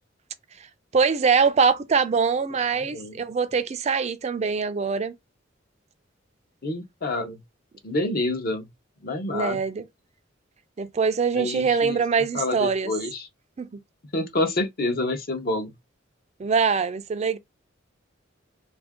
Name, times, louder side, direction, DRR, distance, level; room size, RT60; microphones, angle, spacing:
voice 1, 0.9-5.1 9.3-9.8 10.8-12.9 13.6-13.7 16.4-17.4, right 5 dB, 35° right, 0.4 m, -23 dB
voice 2, 2.7-3.1 6.6-7.4 7.8-8.7 9.0-9.6 11.3-12.0 12.3-13.3 14.1-15.7, left 2 dB, 50° left, 0.7 m, -28 dB
3.5 x 2.5 x 3.5 m
head